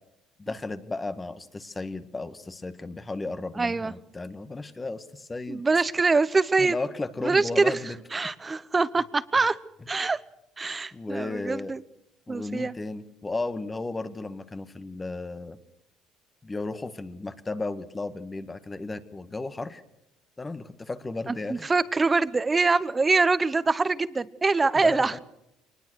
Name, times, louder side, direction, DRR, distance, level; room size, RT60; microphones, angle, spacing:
voice 1, 0.4-5.6 6.6-8.0 10.9-11.8 12.3-15.6 16.4-19.8 20.4-21.6 24.7-25.2, left 3 dB, 20° left, 10 dB, 1.6 m, -34 dB
voice 2, 3.6-3.9 5.5-6.7 7.2-7.8 8.1-9.6 9.9-10.2 10.6-11.8 12.3-12.7 21.3-25.1, right 3 dB, 25° right, 16 dB, 1.0 m, -24 dB
23.0 x 20.0 x 6.4 m, 0.82 s
supercardioid pair, 90°, 0 cm